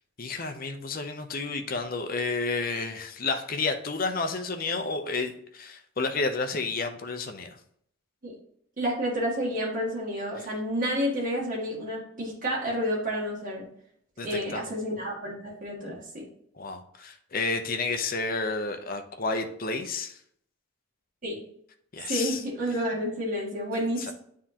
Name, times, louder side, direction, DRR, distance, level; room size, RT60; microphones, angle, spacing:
voice 1, 0.2-7.6 14.2-14.7 16.6-20.2 21.9-22.4 24.0-24.1, left 3 dB, 45° left, 7 dB, 0.7 m, -31 dB
voice 2, 8.8-13.6 14.2-16.2 21.2-21.4 22.1-24.1, equal, 40° right, -6 dB, 2.1 m, -30 dB
9.4 x 3.7 x 2.9 m, 0.66 s
head